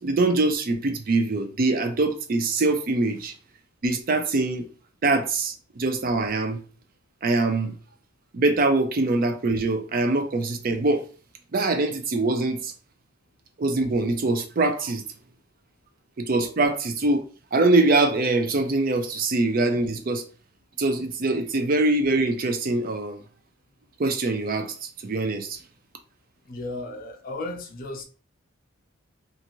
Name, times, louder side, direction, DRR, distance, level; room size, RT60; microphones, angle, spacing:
voice 1, 0.0-3.3 3.8-4.7 5.0-6.6 7.2-7.8 8.3-11.0 11.5-12.7 13.6-15.0 16.2-17.2 17.5-20.2 20.8-23.2 24.0-25.6, right 2 dB, 45° right, 0.4 m, -23 dB
voice 2, 26.4-28.0, left 2 dB, 45° left, 0.5 m, -34 dB
2.6 x 2.5 x 2.9 m
head